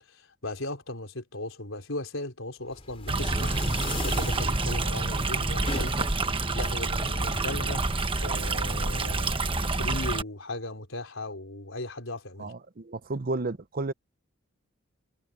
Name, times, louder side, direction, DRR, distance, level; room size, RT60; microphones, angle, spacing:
voice 1, 0.0-6.2 6.5-12.5, left 2 dB, 70° left, 4.6 m, -37 dB
sound 1, 2.7-8.5, left 2 dB, 30° left, 4.7 m, -38 dB
Stream, 3.1-10.2, right 3 dB, 25° right, 1.2 m, -28 dB
voice 2, 12.4-13.9, right 2 dB, 45° right, 0.8 m, -32 dB
head